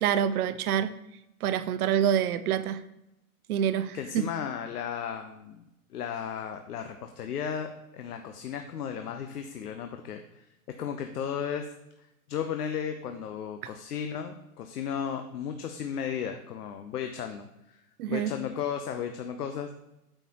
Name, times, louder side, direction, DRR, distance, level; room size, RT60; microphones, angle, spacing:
voice 1, 0.0-0.9 1.4-2.8 3.5-4.3 13.6-13.7 18.0-18.3, right 9 dB, 75° right, 13 dB, 0.7 m, -27 dB
voice 2, 3.9-5.6 5.9-10.5 10.8-11.7 12.3-17.8 18.1-19.8, left 8 dB, 80° left, 6 dB, 0.8 m, -35 dB
8.9 x 6.5 x 2.9 m, 0.88 s
hypercardioid pair, 110°, 45 cm